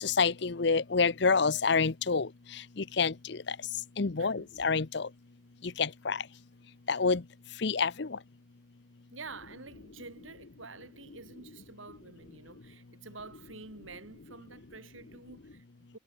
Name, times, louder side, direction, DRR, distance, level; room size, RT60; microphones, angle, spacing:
voice 1, 0.0-2.3 3.0-3.4 4.0-5.1 5.8-6.2 6.9-7.2 7.6-8.2, left 4 dB, 60° left, 0.8 m, -27 dB
voice 2, 9.1-16.0, right 3 dB, 90° right, 4.3 m, -48 dB
head